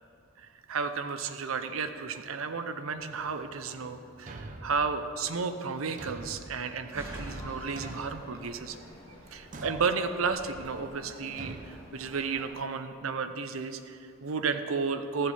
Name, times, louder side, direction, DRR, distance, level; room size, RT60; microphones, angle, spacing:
voice 1, 0.4-8.8 9.3-15.3, right 5 dB, 75° right, 8 dB, 0.6 m, -33 dB
Slam, 3.0-8.5, right 1 dB, 15° right, 1.4 m, -48 dB
Thump thud, 4.3-4.9 6.0-6.6 7.8-8.3 9.5-10.0 11.4-11.7, right 2 dB, 40° right, 0.6 m, -43 dB
sound 1, 7.2-12.5, equal, 25° left, 2.0 m, -48 dB
14.0 x 7.5 x 4.2 m, 2.5 s
head